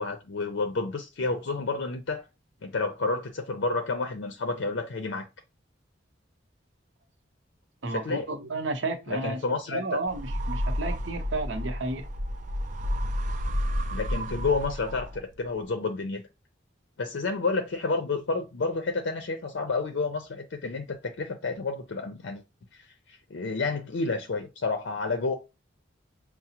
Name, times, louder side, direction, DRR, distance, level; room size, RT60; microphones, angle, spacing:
voice 1, 0.0-2.2 2.6-5.2 7.9-8.3 9.1-9.8 13.9-16.2 17.0-22.4 22.7-25.3, left 3 dB, 70° left, 0.5 m, -30 dB
voice 2, 7.8-12.1, right 2 dB, 75° right, 0.7 m, -32 dB
sound 1, 10.1-15.4, equal, 40° right, 0.4 m, -31 dB
5.8 x 2.0 x 2.8 m
head